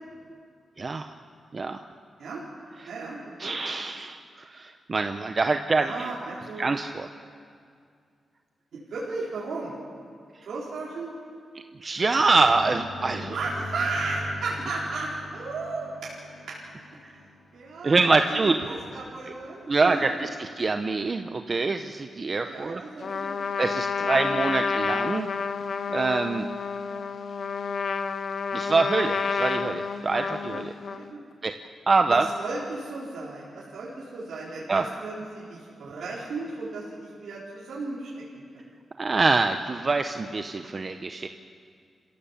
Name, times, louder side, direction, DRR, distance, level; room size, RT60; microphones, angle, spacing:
voice 1, 0.8-1.1 1.5-1.8 2.8-2.9 3.4-6.1 6.6-7.1 11.8-13.4 17.0-17.1 17.8-18.6 19.3-19.4 19.7-22.8 23.6-25.3 25.9-26.5 28.5-30.7 31.4-31.5 31.9-32.3 34.7-34.8 39.0-41.3, right 3 dB, 35° right, 7 dB, 0.8 m, -25 dB
voice 2, 2.9-3.5 5.8-6.7 8.9-9.7 10.4-11.1 13.3-16.1 16.5-16.6 16.9-17.1 17.5-20.1 22.3-23.4 24.0-24.4 26.8-27.2 30.9-31.2 32.1-38.6, right 3 dB, 80° right, -7 dB, 4.4 m, -35 dB
sound 1, 12.4-18.3, left 1 dB, 40° left, 5.6 m, -41 dB
Trumpet, 23.0-31.1, left 5 dB, 60° left, 0.9 m, -30 dB
27.5 x 16.0 x 7.3 m, 2.3 s
cardioid pair, 105°, 0 cm